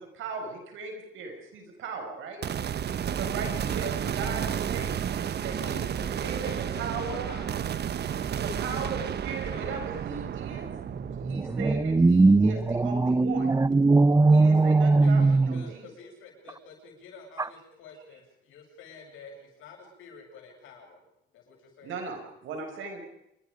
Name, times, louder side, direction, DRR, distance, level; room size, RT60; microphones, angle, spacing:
voice 1, 0.0-2.4 3.1-5.1 5.4-5.9 6.2-6.5 6.7-7.3 8.4-10.7 11.2-13.5 14.3-15.9 21.8-23.0, right 4 dB, 85° right, 6.5 m, -38 dB
sound 1, 2.4-13.8, right 9 dB, 55° right, 1.2 m, -32 dB
voice 2, 5.6-7.8 9.5-9.8 15.0-21.0 21.3-22.0, left 5 dB, 85° left, 7.9 m, -48 dB
voice 3, 10.9-15.7 17.4-17.5, right 3 dB, 15° right, 0.8 m, -21 dB
28.0 x 23.5 x 5.3 m
cardioid pair, 90°, 20 cm